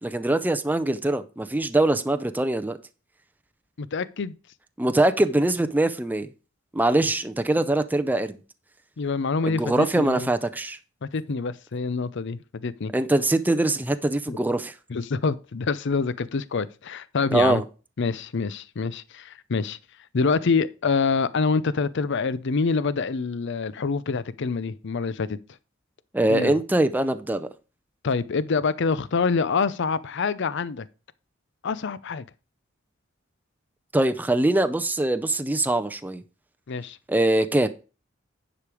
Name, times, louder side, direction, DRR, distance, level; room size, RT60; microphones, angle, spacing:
voice 1, 0.0-2.8 4.8-6.3 6.7-8.4 9.5-10.8 12.9-14.7 17.3-17.6 26.1-27.5 33.9-36.2 37.1-37.7, right 2 dB, 10° right, 0.4 m, -23 dB
voice 2, 3.8-4.3 9.0-10.3 11.0-12.9 14.3-14.4 14.9-17.6 18.0-19.8 20.1-25.4 26.3-26.6 28.0-30.9 31.6-32.2 36.7-37.0, left 4 dB, 65° left, 0.6 m, -26 dB
9.9 x 5.1 x 4.8 m
head